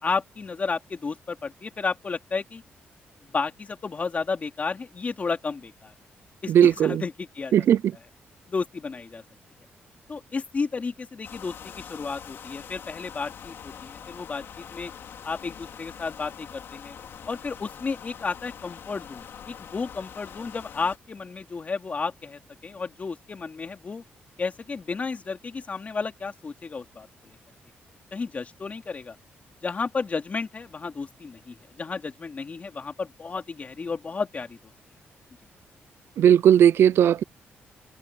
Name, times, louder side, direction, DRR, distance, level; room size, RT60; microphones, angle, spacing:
voice 1, 0.0-2.6 3.2-5.9 6.4-7.6 8.5-9.2 10.1-14.4 14.7-14.9 15.2-17.0 17.3-24.0 24.4-27.4 28.1-29.2 29.6-34.6, left 4 dB, 35° left, 3.3 m, -32 dB
voice 2, 6.5-7.0 7.5-7.9 36.2-37.2, right 9 dB, 75° right, 0.6 m, -17 dB
sound 1, 11.2-21.0, left 8 dB, 70° left, 3.4 m, -44 dB
cardioid pair, 100°, 4 cm